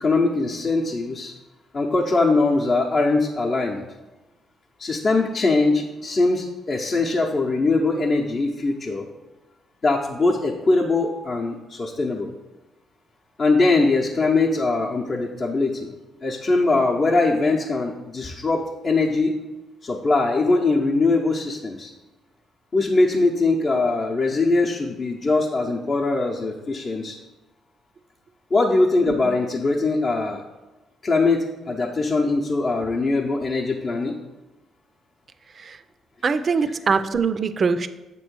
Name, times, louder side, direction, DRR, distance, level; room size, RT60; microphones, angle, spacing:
voice 1, 0.0-1.3 1.7-3.8 4.8-9.1 9.8-12.3 13.4-15.9 16.2-19.3 19.8-21.9 22.7-27.2 28.5-30.4 31.0-34.1, left 3 dB, 40° left, -2 dB, 0.7 m, -21 dB
voice 2, 29.1-29.4 35.6-35.8 36.2-37.9, right 5 dB, 45° right, 11 dB, 0.4 m, -23 dB
8.0 x 3.0 x 6.1 m, 1.1 s
cardioid pair, 90°, 0 cm